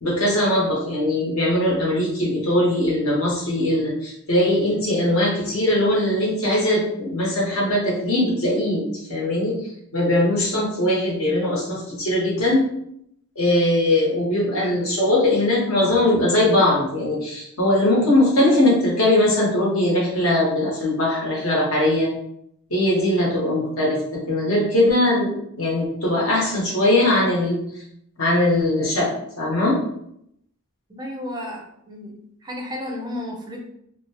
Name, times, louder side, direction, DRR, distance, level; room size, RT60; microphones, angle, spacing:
voice 1, 0.0-9.6 9.9-12.6 13.4-22.1 22.7-27.6 28.2-29.8, left 1 dB, 65° left, -4 dB, 1.1 m, -20 dB
voice 2, 30.9-32.1 32.4-33.6, left 1 dB, 20° right, 0 dB, 0.5 m, -32 dB
2.7 x 2.2 x 2.8 m, 0.72 s
head